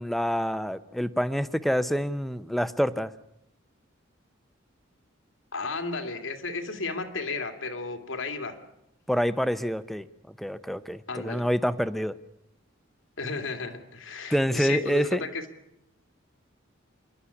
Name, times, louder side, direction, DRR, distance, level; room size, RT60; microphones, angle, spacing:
voice 1, 0.0-3.1 9.1-10.1 10.4-12.1 14.3-15.2, equal, ahead, 13 dB, 0.7 m, -27 dB
voice 2, 5.5-8.6 11.1-11.5 13.2-15.4, left 3 dB, 80° left, 6 dB, 2.3 m, -33 dB
27.0 x 11.5 x 9.7 m, 0.84 s
head